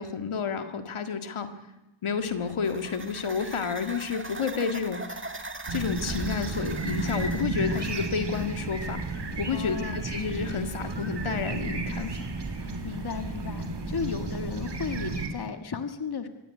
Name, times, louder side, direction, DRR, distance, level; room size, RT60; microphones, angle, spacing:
voice 1, 0.0-1.5 2.0-5.2 5.7-9.0 9.4-12.2, left 6 dB, 75° left, 7 dB, 2.0 m, -30 dB
sound 1, 2.3-8.5, right 2 dB, 25° right, 1.7 m, -41 dB
sound 2, 5.7-15.3, right 3 dB, 55° right, 2.9 m, -32 dB
voice 2, 9.5-10.0 12.6-16.3, left 5 dB, 50° left, 8 dB, 1.7 m, -35 dB
24.5 x 16.5 x 9.5 m, 1.0 s
wide cardioid pair, 125°, 49 cm